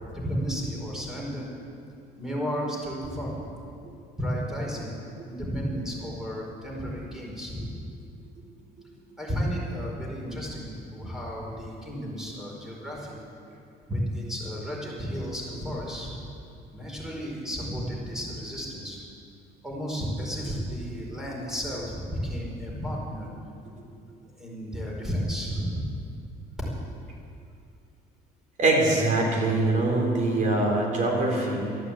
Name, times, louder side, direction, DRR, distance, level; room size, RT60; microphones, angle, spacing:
voice 1, 0.1-1.5 2.2-3.5 4.2-5.0 5.3-7.8 9.2-13.2 13.9-16.2 16.7-19.0 19.6-23.3 24.4-26.0, equal, 5° right, -3 dB, 4.7 m, -33 dB
voice 2, 28.6-31.8, right 2 dB, 50° right, 0 dB, 4.0 m, -23 dB
13.0 x 11.5 x 8.6 m, 2.5 s
cardioid pair, 110°, 17 cm